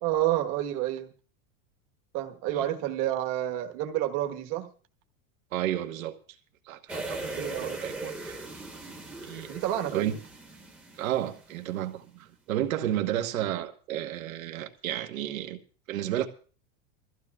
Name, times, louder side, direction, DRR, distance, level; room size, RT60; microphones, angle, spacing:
voice 1, 0.0-1.1 2.1-4.7 7.4-7.8 9.5-10.1, right 13 dB, 40° right, 1.3 m, -29 dB
voice 2, 5.5-6.2 6.6-8.4 9.2-9.5 9.9-10.1 11.0-15.6 15.9-16.3, right 12 dB, 85° right, 1.4 m, -32 dB
sound 1, 6.9-11.7 12.0-12.1, right 2 dB, 5° right, 1.0 m, -39 dB
22.0 x 14.5 x 2.3 m
supercardioid pair, 165°, 40 cm